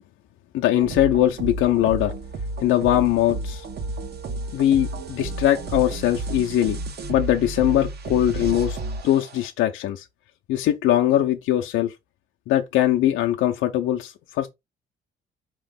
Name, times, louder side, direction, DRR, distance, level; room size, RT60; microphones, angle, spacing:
voice 1, 0.5-2.1 2.6-3.7 4.5-6.8 7.1-8.8 9.0-10.0 10.5-11.9 12.5-14.5, left 12 dB, 85° left, 0.6 m, -21 dB
sound 1, 0.8-9.5, right 2 dB, 55° right, 1.1 m, -32 dB
5.0 x 3.0 x 3.5 m
cardioid pair, 90°, 20 cm